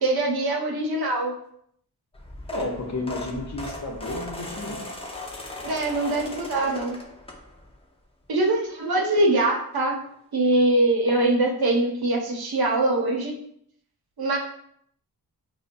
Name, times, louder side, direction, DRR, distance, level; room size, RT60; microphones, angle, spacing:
voice 1, 0.0-1.3 5.6-7.0 8.3-10.0 10.3-13.3 14.2-14.4, right 2 dB, 65° right, 0 dB, 0.8 m, -23 dB
sound 1, 2.1-7.8 8.2-8.5 9.7-9.8 10.1-10.2 10.5-10.6, left 2 dB, 15° left, 0.7 m, -38 dB
voice 2, 2.5-4.8, left 2 dB, 45° left, 1 dB, 0.8 m, -32 dB
5.2 x 2.1 x 2.6 m, 0.69 s
wide cardioid pair, 75°, 39 cm